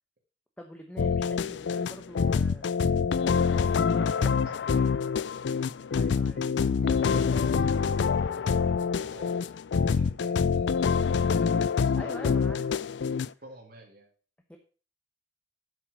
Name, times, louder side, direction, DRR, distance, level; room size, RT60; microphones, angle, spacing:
voice 1, 0.6-2.7 3.5-4.6 5.9-6.5 11.9-12.6 13.3-13.4 14.5-14.6, equal, 5° left, 3 dB, 1.0 m, -45 dB
sound 1, 1.0-13.3, left 5 dB, 70° left, 0.4 m, -26 dB
voice 2, 3.9-5.0 6.0-11.7 11.9-12.9 13.4-14.1, right 1 dB, 55° right, -2 dB, 2.0 m, -49 dB
8.1 x 7.6 x 6.1 m, 0.39 s
head